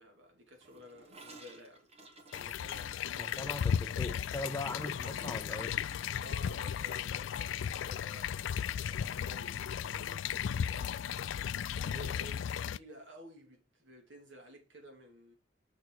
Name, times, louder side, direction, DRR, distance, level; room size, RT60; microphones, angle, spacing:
voice 1, 0.0-1.9 2.3-3.3 3.7-4.0 6.2-11.1 11.7-15.3, equal, 75° right, 2.7 m, -53 dB
Gurgling / Toilet flush, 0.6-8.9 9.1-9.3 9.6-10.0 10.3-10.4 10.7-10.8 11.7-11.8, right 2 dB, 35° right, 1.6 m, -56 dB
sound 1, 2.3-12.8, left 8 dB, 80° left, 0.3 m, -35 dB
voice 2, 3.2-5.7, left 2 dB, 15° left, 0.5 m, -40 dB
6.5 x 6.3 x 4.7 m
head